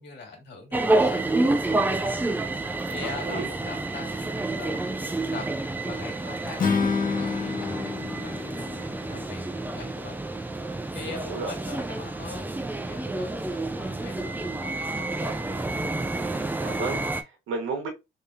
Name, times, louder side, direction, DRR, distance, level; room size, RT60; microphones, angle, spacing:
voice 1, 0.0-2.2 2.5-10.2 10.5-15.4, left 4 dB, 60° left, 2.1 m, -43 dB
sound 1, 0.7-17.2, right 2 dB, 10° right, 0.4 m, -29 dB
voice 2, 3.2-3.5 11.2-11.5 16.6-17.9, right 4 dB, 90° right, 1.3 m, -32 dB
Acoustic guitar / Strum, 6.6-9.9, left 5 dB, 45° left, 1.0 m, -29 dB
3.6 x 3.4 x 2.7 m
cardioid pair, 90°, 20 cm